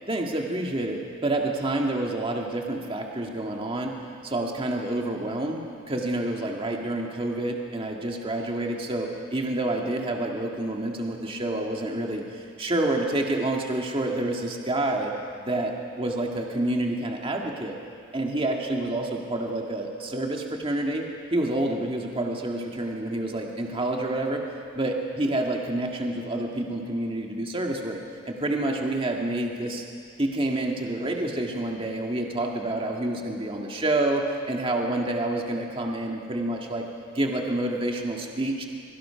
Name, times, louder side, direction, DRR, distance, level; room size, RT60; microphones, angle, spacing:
voice 1, 0.1-15.1 15.4-17.7 18.1-21.0 21.3-24.4 24.7-28.0 28.3-29.8 30.2-36.8 37.1-38.7, right 1 dB, 25° right, 1 dB, 1.8 m, -28 dB
25.5 x 23.0 x 5.8 m, 2.4 s
head